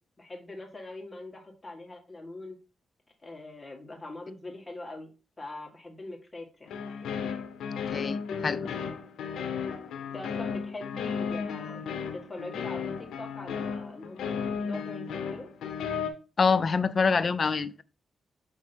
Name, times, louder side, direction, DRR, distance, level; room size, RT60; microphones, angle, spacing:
voice 1, 0.2-2.6 3.2-6.7 10.1-11.8 12.1-15.5, left 2 dB, 25° left, 1.7 m, -42 dB
sound 1, 6.7-16.1, left 6 dB, 85° left, 0.7 m, -34 dB
voice 2, 7.9-8.7 16.4-17.8, left 5 dB, 45° left, 0.4 m, -26 dB
6.5 x 3.3 x 4.4 m
cardioid pair, 80°, 0 cm